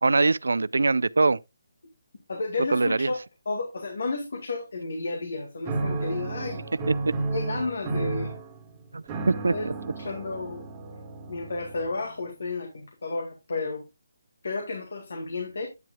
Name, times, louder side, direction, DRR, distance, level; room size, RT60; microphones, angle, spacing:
voice 1, 0.0-1.4 2.7-3.1 6.9-7.0 8.9-9.7, right 3 dB, 90° right, 0.3 m, -23 dB
voice 2, 2.3-3.2 3.5-6.6 7.3-8.3 9.5-9.7 9.9-10.7 11.3-13.8 14.4-15.7, left 3 dB, 75° left, 2.0 m, -32 dB
sound 1, 5.6-12.1, right 3 dB, 15° right, 1.7 m, -32 dB
9.4 x 7.5 x 2.3 m
hypercardioid pair, 165°, 0 cm